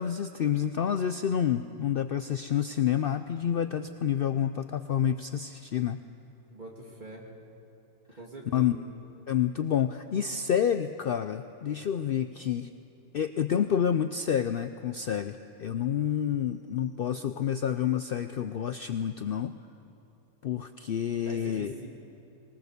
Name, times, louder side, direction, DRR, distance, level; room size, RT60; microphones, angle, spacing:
voice 1, 0.0-6.0 8.5-8.7 9.3-12.7 13.1-19.5 20.4-21.7, left 9 dB, 75° left, 10 dB, 0.5 m, -28 dB
voice 2, 6.5-7.3 8.1-8.7 21.2-21.9, right 1 dB, 30° right, -2 dB, 3.0 m, -44 dB
21.0 x 19.5 x 6.8 m, 3.0 s
omnidirectional pair, 1.6 m